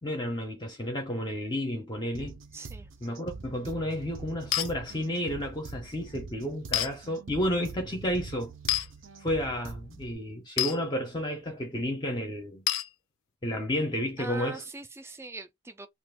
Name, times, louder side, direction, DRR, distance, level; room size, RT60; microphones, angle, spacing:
voice 1, 0.0-2.4 3.0-8.5 9.2-12.6 13.4-14.6, equal, 20° left, 0.6 m, -31 dB
sound 1, 2.1-10.1, right 4 dB, 75° right, 0.6 m, -44 dB
voice 2, 2.5-2.9 14.2-15.9, right 2 dB, 10° right, 0.4 m, -41 dB
sound 2, 4.5-4.7 6.7-6.9 8.7-8.9 10.6-10.8 12.7-12.9, left 13 dB, 85° left, 0.4 m, -27 dB
2.5 x 2.4 x 3.6 m
head